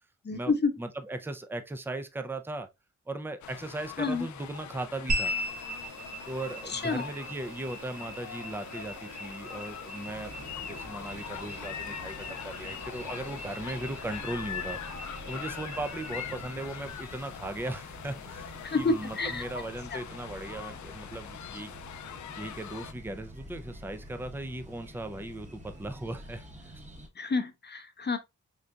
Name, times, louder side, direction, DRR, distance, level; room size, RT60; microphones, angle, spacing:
voice 1, 0.2-0.7 4.0-4.3 6.7-7.1 18.6-19.4 19.9-20.0 27.2-28.2, left 3 dB, 35° left, 0.7 m, -29 dB
voice 2, 0.8-2.7 3.1-5.3 6.3-21.7 22.4-26.4 26.7-26.8, right 2 dB, 5° right, 0.5 m, -38 dB
sound 1, 3.4-22.9, left 9 dB, 65° left, 0.5 m, -43 dB
sound 2, 5.1-19.7, equal, 65° right, 1.9 m, -40 dB
sound 3, 10.0-27.1, equal, 25° right, 1.0 m, -48 dB
3.9 x 3.3 x 2.3 m
cardioid pair, 70°, 31 cm